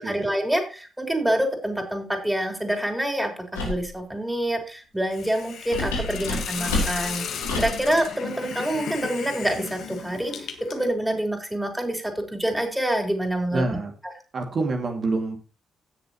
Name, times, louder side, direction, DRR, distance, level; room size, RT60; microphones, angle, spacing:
voice 1, 0.0-13.6, right 1 dB, 10° right, 3 dB, 4.1 m, -27 dB
sound 1, 3.5-3.9 5.7-7.8, left 2 dB, 85° left, 4.4 m, -28 dB
Hiss, 5.1-10.9, left 7 dB, 65° left, 1.7 m, -35 dB
voice 2, 13.5-13.9 14.3-15.4, right 3 dB, 45° right, 3 dB, 2.3 m, -26 dB
17.0 x 6.9 x 3.0 m, 0.35 s
hypercardioid pair, 40°, 0 cm